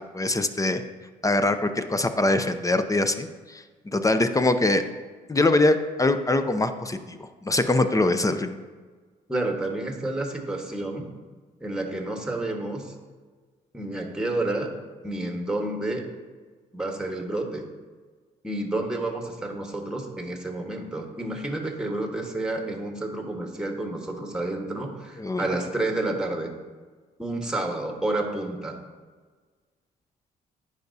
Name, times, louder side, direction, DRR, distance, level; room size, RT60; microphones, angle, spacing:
voice 1, 0.1-0.8 1.2-3.6 3.9-4.8 5.3-8.6 25.2-25.4, left 2 dB, 20° left, 9 dB, 0.6 m, -23 dB
voice 2, 9.3-11.0 11.6-12.9 13.7-14.7 15.0-16.0 16.7-17.6 18.4-26.5 27.2-28.8, right 2 dB, 5° right, 2 dB, 1.4 m, -30 dB
10.5 x 4.9 x 2.7 m, 1.4 s
supercardioid pair, 60°, 17 cm